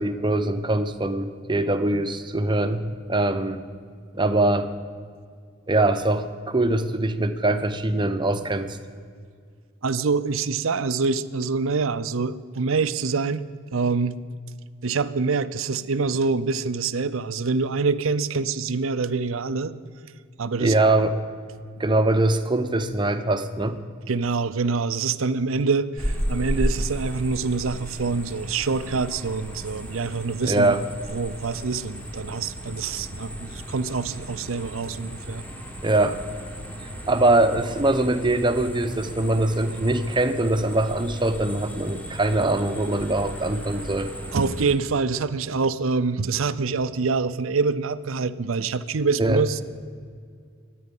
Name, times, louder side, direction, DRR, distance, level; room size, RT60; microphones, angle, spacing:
voice 1, 0.0-3.6 4.1-4.7 5.7-8.7 20.6-21.2 21.8-23.8 30.4-30.8 35.8-36.2 37.1-44.1 49.2-49.4, right 2 dB, 20° right, 9 dB, 0.8 m, -22 dB
voice 2, 9.8-13.4 13.7-14.2 14.8-19.7 20.4-20.7 24.1-30.8 31.1-35.4 44.3-49.6, right 4 dB, 70° right, 13 dB, 0.6 m, -25 dB
sound 1, 26.0-44.7, equal, 5° left, 1.4 m, -35 dB
23.0 x 9.4 x 5.4 m, 2.1 s
head